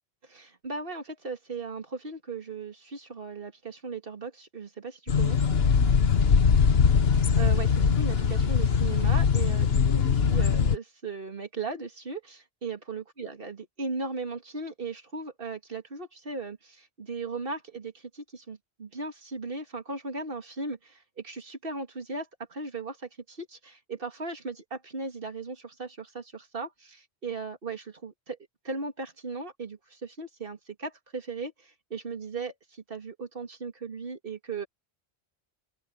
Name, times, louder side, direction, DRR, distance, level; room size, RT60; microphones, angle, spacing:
voice 1, 0.2-5.4 7.1-28.4 28.6-34.7, right 4 dB, 55° right, 2.4 m, -37 dB
sound 1, 5.1-10.8, left 6 dB, 65° left, 1.5 m, -22 dB
open air
omnidirectional pair, 1.1 m